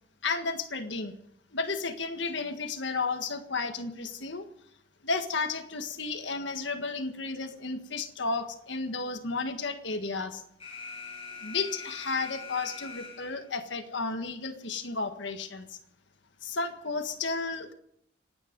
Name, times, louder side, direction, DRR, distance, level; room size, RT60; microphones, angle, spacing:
voice 1, 0.2-1.2 1.5-4.5 5.0-10.4 11.3-15.8 16.4-17.7, left 4 dB, 75° left, 7 dB, 1.7 m, -33 dB
Alarm, 10.6-13.6, left 5 dB, 30° left, 4.8 m, -43 dB
26.5 x 10.0 x 5.4 m, 0.74 s
head